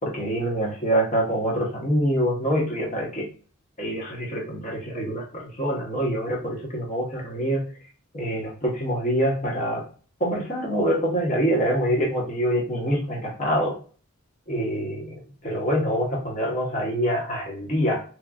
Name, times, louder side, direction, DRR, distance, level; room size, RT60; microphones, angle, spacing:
voice 1, 0.0-3.3 3.8-7.7 8.1-9.9 10.2-13.8 14.5-18.0, equal, 35° left, -1 dB, 0.9 m, -25 dB
3.0 x 2.4 x 2.2 m, 0.39 s
head